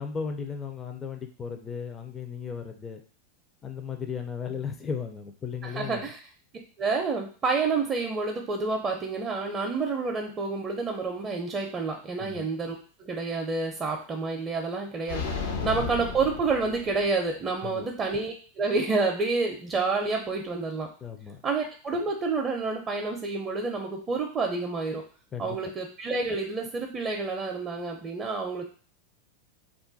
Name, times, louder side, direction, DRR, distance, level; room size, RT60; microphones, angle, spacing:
voice 1, 0.0-3.0 3.6-6.1 12.2-12.5 15.6-15.9 17.6-17.9 21.0-21.4 25.3-25.6, left 6 dB, 25° left, 5 dB, 0.4 m, -36 dB
voice 2, 5.6-6.2 6.8-20.9 21.4-25.0 25.4-28.7, right 4 dB, 30° right, 1 dB, 0.5 m, -29 dB
sound 1, 15.1-17.3, left 5 dB, 75° left, 0.6 m, -33 dB
2.4 x 2.1 x 3.8 m, 0.41 s
hypercardioid pair, 100°, 0 cm